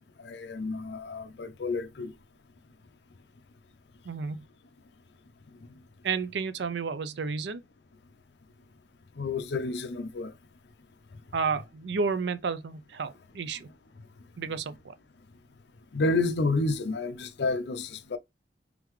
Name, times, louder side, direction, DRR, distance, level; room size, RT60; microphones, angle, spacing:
voice 1, 0.2-2.1 9.2-10.3 15.9-18.2, left 3 dB, 70° left, 0.5 m, -30 dB
voice 2, 4.1-4.4 6.0-7.6 11.3-13.7 14.4-14.9, right 5 dB, 75° right, 0.5 m, -31 dB
3.7 x 3.4 x 3.1 m
head